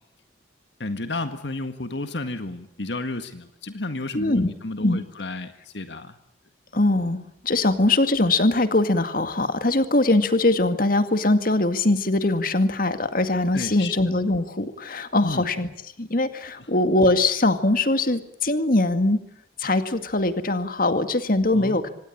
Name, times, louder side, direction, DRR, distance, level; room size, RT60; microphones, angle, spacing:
voice 1, 0.8-6.2 13.5-13.9 15.2-15.5 21.5-21.8, left 2 dB, 70° left, 9 dB, 1.8 m, -32 dB
voice 2, 4.1-4.5 4.8-5.0 6.7-15.7 16.0-19.2 19.6-21.9, left 2 dB, 50° left, 9 dB, 2.1 m, -22 dB
26.0 x 19.5 x 8.7 m, 0.77 s
head